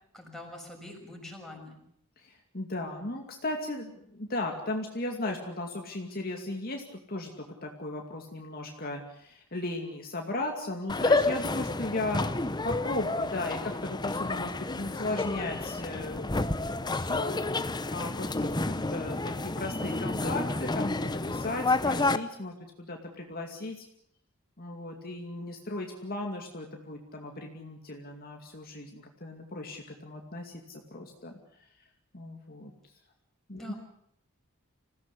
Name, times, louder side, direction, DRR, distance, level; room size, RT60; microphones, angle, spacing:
voice 1, 0.1-1.8 33.5-33.7, left 1 dB, ahead, -1 dB, 6.5 m, -44 dB
voice 2, 2.2-7.3 7.6-17.3 17.9-23.9 24.6-31.3 32.1-32.7 33.5-33.7, left 2 dB, 45° left, 2 dB, 2.5 m, -36 dB
sound 1, 10.9-22.2, left 2 dB, 20° left, 0.8 m, -30 dB
26.5 x 17.0 x 8.4 m, 0.71 s
head